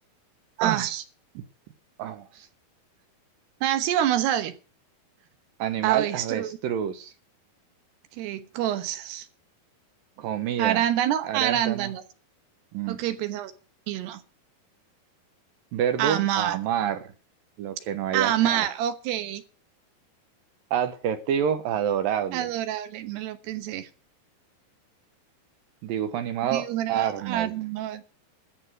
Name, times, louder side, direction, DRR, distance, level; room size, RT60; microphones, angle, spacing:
voice 1, 0.6-1.0 3.6-4.6 5.8-6.6 8.2-9.3 10.6-12.0 12.9-13.5 13.9-14.2 16.0-16.6 18.1-19.4 22.3-23.9 26.5-28.0, right 12 dB, 90° right, 3.3 m, -26 dB
voice 2, 2.0-2.5 5.6-7.1 10.2-10.8 11.2-11.9 12.7-13.0 15.7-17.1 17.6-18.7 20.7-22.5 25.8-27.5, right 9 dB, 75° right, 2.3 m, -28 dB
13.5 x 6.7 x 9.1 m
omnidirectional pair, 4.6 m